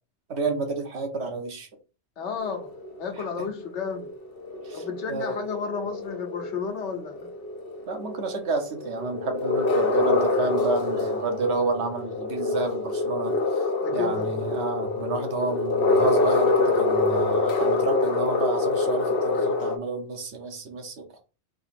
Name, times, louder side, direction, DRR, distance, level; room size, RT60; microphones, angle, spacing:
voice 1, 0.3-1.7 3.4-3.5 4.6-5.4 7.9-13.4 13.9-21.2, right 3 dB, 75° right, 1.2 m, -30 dB
voice 2, 2.2-2.7 3.0-4.1 4.7-7.3 13.8-14.4, left 6 dB, 80° left, 1.2 m, -32 dB
sound 1, 2.4-19.8, left 3 dB, 55° left, 1.0 m, -26 dB
3.9 x 2.9 x 4.2 m
omnidirectional pair, 1.2 m